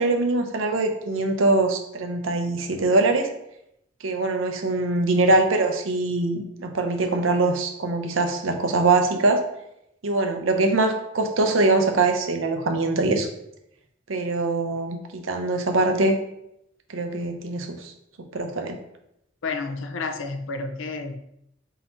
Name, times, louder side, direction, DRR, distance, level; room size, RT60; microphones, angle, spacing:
voice 1, 0.0-3.3 4.0-9.4 10.0-13.3 14.1-16.2 16.9-17.9 18.3-18.8, right 2 dB, 90° right, 5 dB, 0.6 m, -23 dB
voice 2, 19.4-21.2, left 3 dB, 80° left, 7 dB, 0.5 m, -30 dB
3.9 x 2.7 x 4.1 m, 0.80 s
head